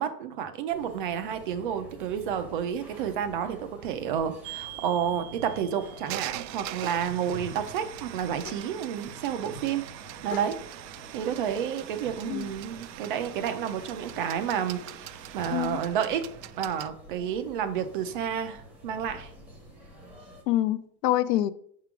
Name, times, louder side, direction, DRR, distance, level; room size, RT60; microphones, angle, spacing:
voice 1, 0.0-9.8 10.2-10.6 11.1-16.2 16.6-19.3, right 8 dB, 35° right, 9 dB, 0.4 m, -30 dB
sound 1, 0.7-20.4, equal, 5° right, 0.7 m, -48 dB
sound 2, 4.4-16.9, right 15 dB, 80° right, 0.6 m, -42 dB
sound 3, 6.7-12.3, left 5 dB, 25° left, 0.9 m, -49 dB
voice 2, 15.5-15.8 20.5-21.5, left 14 dB, 75° left, 16 dB, 0.6 m, -26 dB
5.7 x 3.7 x 5.9 m, 0.64 s
supercardioid pair, 160°, 49 cm